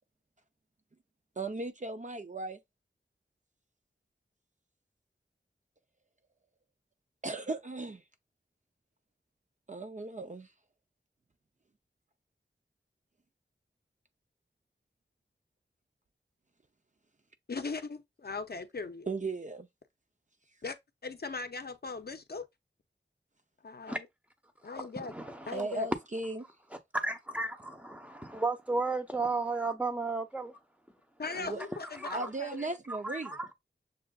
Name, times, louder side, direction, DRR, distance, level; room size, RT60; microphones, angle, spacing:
voice 1, 1.4-2.6 7.2-8.0 9.7-10.5 19.1-19.7 25.5-26.4 31.4-31.6 32.1-33.4, right 3 dB, 40° right, 0.5 m, -36 dB
voice 2, 17.5-19.1 20.6-20.8 21.0-22.5 23.6-24.1 24.6-25.1 25.5-25.9 31.2-32.8, left 4 dB, 55° left, 0.5 m, -39 dB
voice 3, 25.1-25.6 26.9-30.6 32.0-32.3 32.9-33.5, right 3 dB, 5° right, 0.8 m, -34 dB
6.7 x 2.4 x 2.3 m
wide cardioid pair, 50°, 19 cm